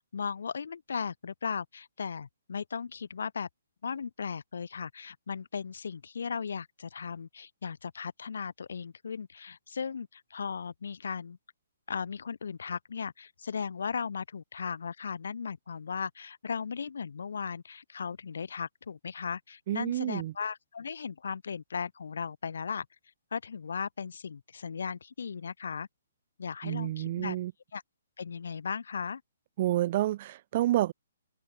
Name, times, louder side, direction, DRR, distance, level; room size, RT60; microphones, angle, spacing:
voice 1, 0.1-3.5 3.8-11.4 11.9-22.9 23.3-25.9 26.4-27.4 27.7-27.8 28.2-29.2, left 6 dB, 70° left, 5.8 m, -37 dB
voice 2, 19.7-20.3 26.6-27.5 29.6-30.9, right 14 dB, 35° right, 2.3 m, -29 dB
open air
hypercardioid pair, 165°, 0 cm